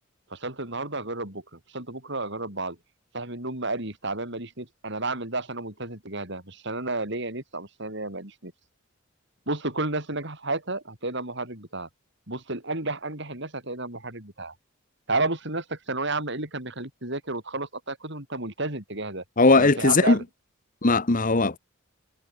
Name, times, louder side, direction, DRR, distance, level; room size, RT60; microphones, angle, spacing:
voice 1, 0.3-2.8 3.1-8.5 9.5-11.9 12.3-14.5 15.1-19.2 19.5-20.2, right 2 dB, 60° right, 6.4 m, -32 dB
voice 2, 19.4-20.2 20.8-21.6, left 3 dB, 40° left, 1.2 m, -19 dB
head